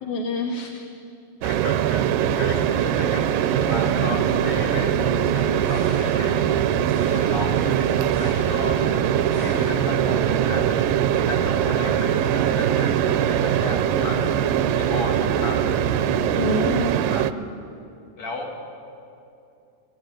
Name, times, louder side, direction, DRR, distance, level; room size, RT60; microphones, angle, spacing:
voice 1, 0.0-0.8 16.4-17.0, left 3 dB, 65° left, 4 dB, 2.3 m, -27 dB
voice 2, 1.4-2.1 2.4-6.6 6.9-8.8 9.3-14.2 14.7-16.1 17.1-17.3 18.2-18.5, left 3 dB, 45° left, 1 dB, 3.4 m, -34 dB
sound 1, 1.4-17.3, right 11 dB, 85° right, 2.4 m, -22 dB
sound 2, 2.2-17.0, left 6 dB, 85° left, 2.7 m, -35 dB
24.5 x 15.5 x 9.2 m, 2.7 s
omnidirectional pair, 3.9 m